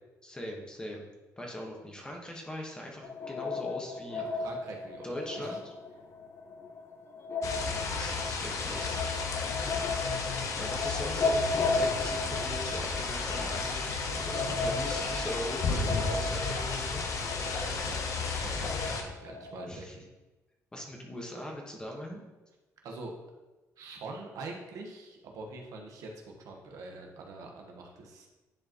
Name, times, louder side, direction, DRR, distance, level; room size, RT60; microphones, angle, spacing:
voice 1, 0.2-1.1 1.4-4.2 5.0-5.7 7.7-9.0 10.6-13.9 14.2-17.0 19.6-20.0 20.7-22.2, left 1 dB, 15° left, 0 dB, 1.4 m, -41 dB
sound 1, 3.0-19.7, left 3 dB, 45° left, 0.6 m, -35 dB
voice 2, 4.1-5.6 14.2-14.7 17.4-20.1 22.8-23.1 23.8-28.3, right 3 dB, 80° right, 1 dB, 1.3 m, -44 dB
sound 2, 7.4-19.0, left 4 dB, 60° left, 0.9 m, -33 dB
10.0 x 4.9 x 3.0 m, 1.1 s
cardioid pair, 120°, 6 cm